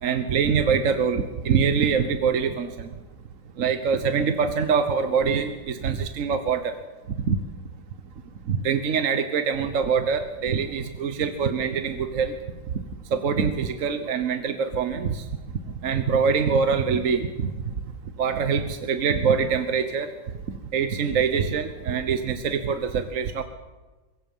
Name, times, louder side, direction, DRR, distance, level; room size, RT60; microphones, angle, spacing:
voice 1, 0.0-2.9 3.6-6.7 7.3-7.4 8.5-12.3 13.1-15.2 15.8-17.5 18.2-20.1 20.7-23.4, right 6 dB, 45° right, 8 dB, 1.2 m, -24 dB
23.5 x 22.0 x 5.5 m, 1.2 s
omnidirectional pair, 2.2 m